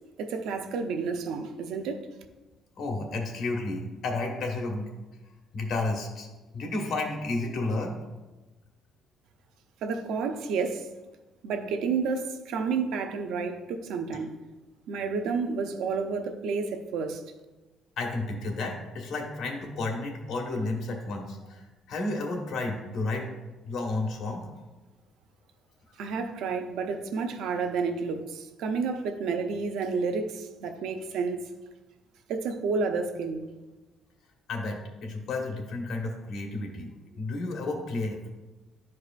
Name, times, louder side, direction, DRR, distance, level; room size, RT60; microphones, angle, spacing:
voice 1, 0.2-2.1 9.8-10.9 11.4-14.3 14.9-17.2 26.0-31.5 32.3-33.5, right 5 dB, 75° right, 6 dB, 0.6 m, -30 dB
voice 2, 2.8-4.9 5.5-6.3 6.5-7.9 14.1-14.2 18.0-23.3 23.6-24.4 34.5-38.3, left 2 dB, 60° left, 1 dB, 1.4 m, -32 dB
11.5 x 4.8 x 2.4 m, 1.2 s
cardioid pair, 160°, 0 cm